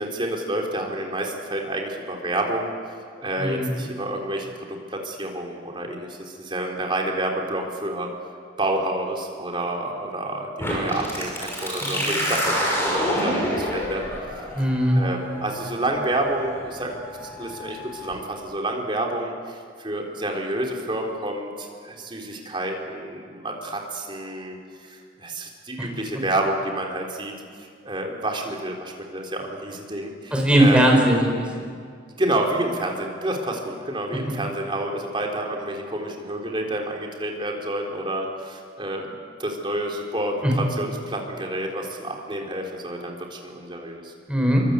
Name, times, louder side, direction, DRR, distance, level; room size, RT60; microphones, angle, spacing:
voice 1, 0.0-2.7 3.2-8.1 8.6-14.0 15.0-17.0 17.4-27.3 27.8-30.9 32.2-39.1 39.4-44.1, right 1 dB, 25° right, 0 dB, 3.7 m, -29 dB
voice 2, 3.4-3.7 11.8-12.3 14.5-15.0 25.8-25.9 30.3-31.4 40.4-40.5 44.3-44.6, right 1 dB, 5° right, 0 dB, 4.9 m, -19 dB
sound 1, 10.6-18.1, equal, 15° left, 6.6 m, -28 dB
25.5 x 24.0 x 8.3 m, 2.1 s
head